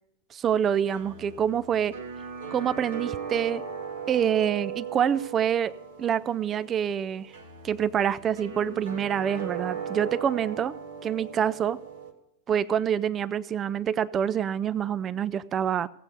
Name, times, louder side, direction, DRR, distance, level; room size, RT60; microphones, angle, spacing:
voice 1, 0.3-2.0 2.5-3.6 4.1-5.7 6.0-7.3 7.6-10.7 11.0-11.8 12.5-15.9, right 8 dB, 25° right, 18 dB, 0.5 m, -26 dB
sound 1, 0.6-12.1, right 6 dB, 65° right, 1.7 m, -38 dB
17.5 x 8.2 x 5.2 m, 0.85 s
figure-of-eight pair, 90°, 0 cm